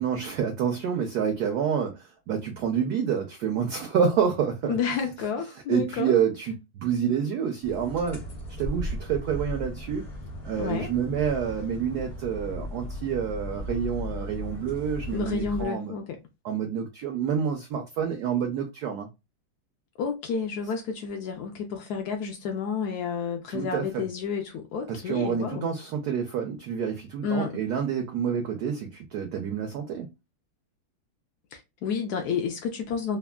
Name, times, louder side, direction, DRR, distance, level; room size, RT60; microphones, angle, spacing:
voice 1, 0.0-4.8 5.7-8.2 8.6-10.1 10.4-15.9 16.4-19.1 23.5-24.1 24.9-30.1, right 7 dB, 85° right, 0.8 m, -28 dB
voice 2, 4.7-6.1 10.6-10.9 15.1-16.2 20.0-25.7 27.2-27.6 31.5-33.2, left 6 dB, 85° left, 0.8 m, -30 dB
sound 1, 7.6-15.7, left 1 dB, 55° left, 0.4 m, -36 dB
3.3 x 2.1 x 2.2 m
omnidirectional pair, 2.2 m